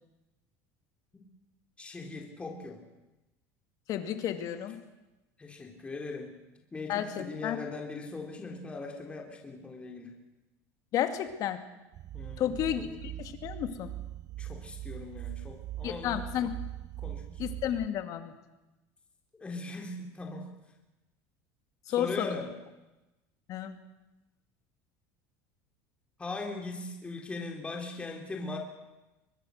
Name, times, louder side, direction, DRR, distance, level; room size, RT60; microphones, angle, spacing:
voice 1, 1.8-2.8 5.4-6.3 6.7-10.1 12.1-12.5 14.4-16.2 17.0-17.6 19.4-20.5 21.9-22.5 26.2-28.6, left 3 dB, 15° left, 1 dB, 3.7 m, -39 dB
voice 2, 3.9-4.8 6.9-7.6 10.9-11.6 12.4-13.9 15.8-16.6 17.4-18.3 21.9-22.4 23.5-23.8, left 10 dB, 50° left, 8 dB, 2.3 m, -32 dB
sound 1, 11.9-17.9, right 14 dB, 45° right, 0.9 m, -41 dB
23.5 x 20.5 x 6.6 m, 1.0 s
supercardioid pair, 125°, 7 cm